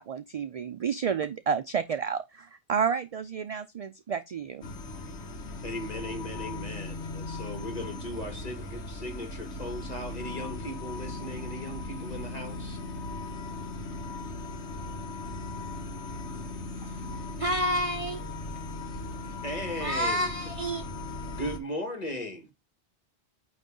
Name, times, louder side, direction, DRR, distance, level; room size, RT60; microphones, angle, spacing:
voice 1, 0.0-4.6, right 6 dB, 55° right, 0.4 m, -30 dB
sound 1, 4.6-21.6, left 2 dB, 80° left, 1.4 m, -38 dB
voice 2, 5.6-12.8 19.4-20.3 21.3-22.5, left 1 dB, 35° left, 1.9 m, -37 dB
voice 3, 17.4-18.2 19.8-20.8, equal, 30° right, 1.0 m, -29 dB
9.1 x 3.2 x 3.7 m
omnidirectional pair, 1.2 m